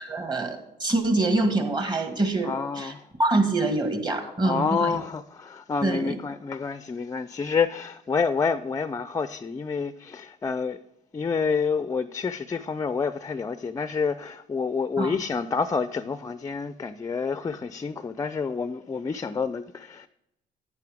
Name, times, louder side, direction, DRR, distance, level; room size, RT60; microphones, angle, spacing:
voice 1, 0.0-2.9 3.2-4.9 5.8-6.2 15.0-15.1, right 2 dB, 25° right, 1.8 m, -25 dB
voice 2, 2.4-3.1 4.2-10.8 11.1-20.1, left 5 dB, 20° left, 0.4 m, -28 dB
10.5 x 9.9 x 3.5 m
cardioid pair, 110°, 17 cm